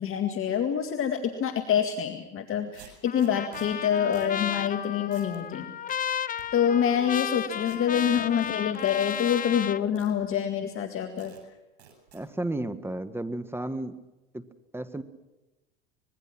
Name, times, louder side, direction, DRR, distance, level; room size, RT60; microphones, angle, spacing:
voice 1, 0.0-5.7 6.5-11.3, left 8 dB, 40° left, 6 dB, 2.1 m, -26 dB
sound 1, 2.0-2.1 2.7-3.7 4.1-4.4 4.7-4.8 5.1-5.4 5.9-6.5 7.6-7.8 8.2-9.3 10.0-10.1 10.7-10.8 11.2-11.4 11.8-12.2, right 9 dB, 80° right, 7.9 m, -52 dB
Trumpet, 3.1-9.8, left 9 dB, 25° left, 0.9 m, -33 dB
voice 2, 12.1-14.0 14.3-14.4 14.7-15.0, right 1 dB, 5° right, 11 dB, 1.5 m, -33 dB
25.5 x 21.5 x 6.1 m, 1.0 s
hypercardioid pair, 95°, 32 cm